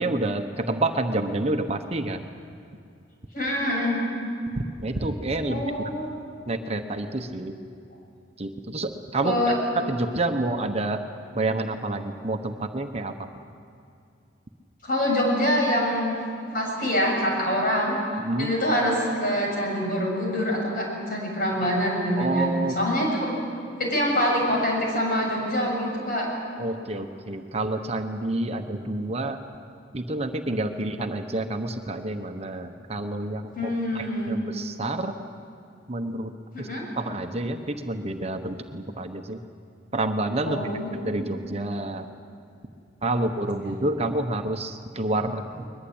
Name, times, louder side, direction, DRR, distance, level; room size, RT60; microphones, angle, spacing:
voice 1, 0.0-2.2 4.8-5.9 6.5-7.5 8.4-9.4 9.9-11.0 11.3-13.3 18.2-18.5 22.2-22.8 26.6-29.4 29.9-35.1 35.9-36.3 36.6-36.7 37.0-39.4 39.9-40.7 41.0-42.1 43.0-45.7, right 2 dB, 35° right, 5 dB, 1.1 m, -28 dB
voice 2, 3.3-4.0 5.5-6.2 9.2-9.5 14.8-16.2 16.5-18.0 18.4-23.3 23.8-26.3 30.8-30.9 33.5-34.4 36.5-36.8 40.4-41.2, equal, 50° left, -1 dB, 7.4 m, -25 dB
22.0 x 21.0 x 8.8 m, 2.5 s
head